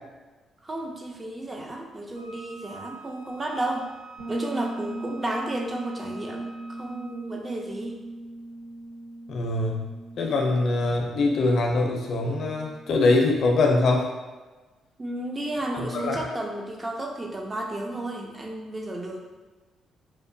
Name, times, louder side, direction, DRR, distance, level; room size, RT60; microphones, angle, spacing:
voice 1, 0.6-3.9 4.3-8.0 15.0-19.2, right 1 dB, 25° right, 1 dB, 0.4 m, -32 dB
Wind instrument woodwind instrument, 2.1-7.4, right 4 dB, 80° right, 0.6 m, -47 dB
Bass guitar, 4.2-13.8, right 1 dB, 60° right, 1.5 m, -39 dB
voice 2, 9.3-9.9 10.2-14.1 15.9-16.2, left 2 dB, 60° left, 1 dB, 0.4 m, -23 dB
2.8 x 2.0 x 2.6 m, 1.2 s
cardioid pair, 90°, 0 cm